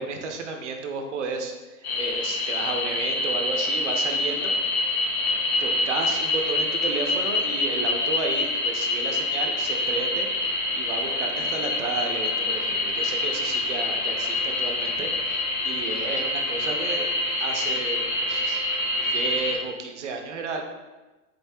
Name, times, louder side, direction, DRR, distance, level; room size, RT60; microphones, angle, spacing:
voice 1, 0.0-4.5 4.8-4.9 5.6-18.7 19.0-20.6, right 4 dB, 55° right, 4 dB, 0.6 m, -33 dB
sound 1, 1.8-19.5, left 2 dB, 30° left, 0.5 m, -26 dB
3.9 x 2.7 x 3.3 m, 1.1 s
hypercardioid pair, 170°, 45 cm